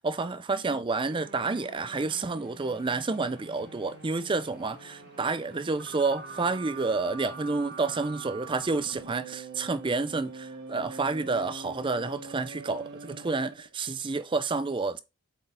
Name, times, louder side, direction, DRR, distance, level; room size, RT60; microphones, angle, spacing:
voice 1, 0.0-15.0, right 3 dB, 20° right, 0.4 m, -29 dB
sound 1, 1.0-13.7, right 4 dB, 50° right, 1.0 m, -44 dB
Bowed string instrument, 1.4-7.2, left 3 dB, 75° left, 1.1 m, -55 dB
7.9 x 4.0 x 3.4 m
head